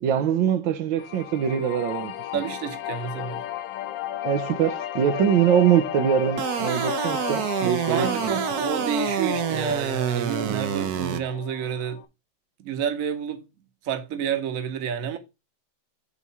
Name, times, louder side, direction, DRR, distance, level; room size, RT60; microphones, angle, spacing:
voice 1, 0.0-2.4 4.2-8.3, right 9 dB, 85° right, 1.5 m, -23 dB
sound 1, 1.0-12.1, left 12 dB, 80° left, 1.3 m, -34 dB
voice 2, 2.3-3.4 7.9-12.0 12.6-13.4 13.8-15.2, right 8 dB, 50° right, 1.2 m, -29 dB
sound 2, 6.4-11.2, right 10 dB, 70° right, 1.0 m, -28 dB
8.3 x 3.1 x 5.4 m
omnidirectional pair, 2.1 m